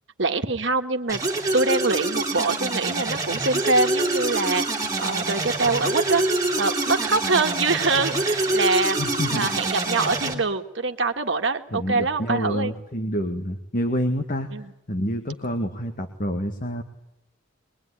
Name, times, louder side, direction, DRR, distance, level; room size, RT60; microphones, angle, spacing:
voice 1, 0.2-1.2 1.5-6.2 6.6-9.0 9.3-12.7 14.5-14.7, right 3 dB, 70° right, 6 dB, 1.7 m, -24 dB
sound 1, 1.1-10.3, right 2 dB, 20° right, 3.4 m, -25 dB
voice 2, 9.0-9.5 11.7-14.5 14.9-16.8, equal, 45° left, 6 dB, 1.9 m, -27 dB
23.5 x 22.0 x 9.9 m, 0.86 s
head